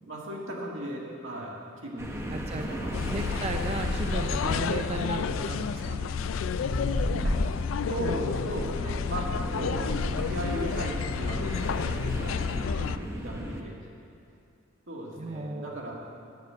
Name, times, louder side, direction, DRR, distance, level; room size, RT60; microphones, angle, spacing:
voice 1, 0.0-1.5 1.8-2.2 2.6-2.9 7.0-7.6 7.9-10.0 10.3-13.8 14.9-15.9, right 1 dB, 80° right, -3 dB, 2.1 m, -37 dB
sound 1, 2.0-13.6, equal, 15° right, 0.9 m, -34 dB
voice 2, 2.3-2.7 3.1-6.0 15.2-15.8, right 3 dB, 35° right, 4 dB, 0.5 m, -35 dB
sound 2, 2.9-13.0, left 7 dB, 80° left, 0.3 m, -31 dB
9.4 x 6.6 x 8.1 m, 2.5 s
head